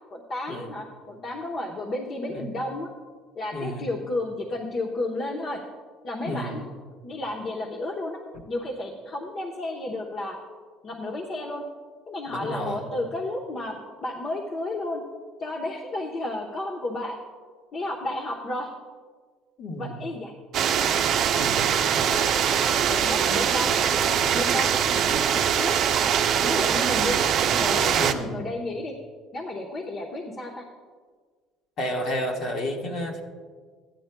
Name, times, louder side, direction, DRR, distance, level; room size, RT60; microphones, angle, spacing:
voice 1, 0.1-2.9 3.4-5.6 6.0-6.6 7.0-8.2 8.5-10.4 10.8-11.6 12.1-15.0 15.4-17.2 17.7-18.7 19.8-20.3 21.7-25.7 26.4-27.2 27.5-28.9 29.3-30.7, left 2 dB, 40° left, -2 dB, 1.0 m, -32 dB
voice 2, 3.5-3.9 6.2-6.7 12.3-12.9 19.6-20.1 21.3-21.7 28.0-28.4 31.8-33.2, equal, 55° left, 1 dB, 1.4 m, -31 dB
sound 1, 20.5-28.1, right 8 dB, 55° right, 0.6 m, -22 dB
14.0 x 10.0 x 2.2 m, 1.5 s
cardioid pair, 120°, 0 cm